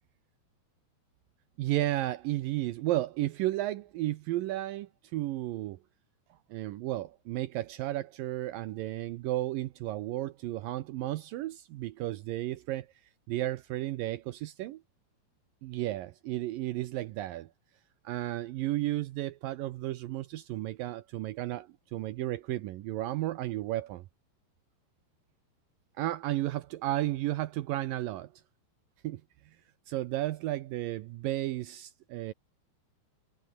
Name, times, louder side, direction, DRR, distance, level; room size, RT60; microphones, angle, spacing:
voice 1, 1.6-5.8 6.5-12.9 13.3-14.8 15.6-17.5 18.0-24.1 26.0-28.3 29.0-29.2 29.9-32.3, right 15 dB, 90° right, 2.0 m, -33 dB
omnidirectional pair, 5.1 m